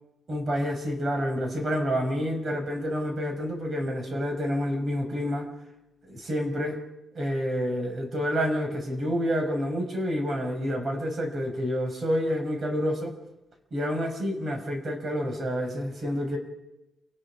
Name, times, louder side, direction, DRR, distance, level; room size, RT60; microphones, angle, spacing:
voice 1, 0.3-5.5 6.1-6.8 7.1-13.1 13.7-16.4, equal, 40° right, 4 dB, 5.2 m, -28 dB
29.0 x 18.5 x 4.9 m, 0.95 s
cardioid pair, 115°, 0 cm